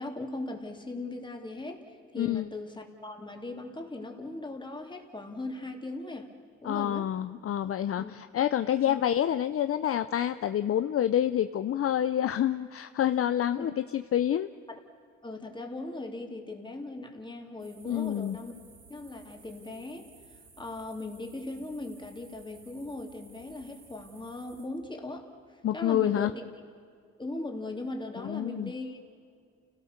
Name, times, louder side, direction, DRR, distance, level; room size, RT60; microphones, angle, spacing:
voice 1, 0.0-6.3 6.6-7.1 8.0-8.1 8.9-9.0 13.6-13.7 14.7-14.8 15.2-18.5 18.9-20.1 20.6-25.3 25.7-26.4 27.2-29.1, left 2 dB, 15° left, 3 dB, 3.0 m, -39 dB
voice 2, 2.2-2.5 6.6-14.5 17.8-18.4 25.6-26.3 28.2-28.7, left 10 dB, 50° left, 11 dB, 0.6 m, -28 dB
sound 1, 17.6-24.6, right 4 dB, 80° right, 7.0 m, -56 dB
29.0 x 18.0 x 6.6 m, 2.2 s
cardioid pair, 90°, 30 cm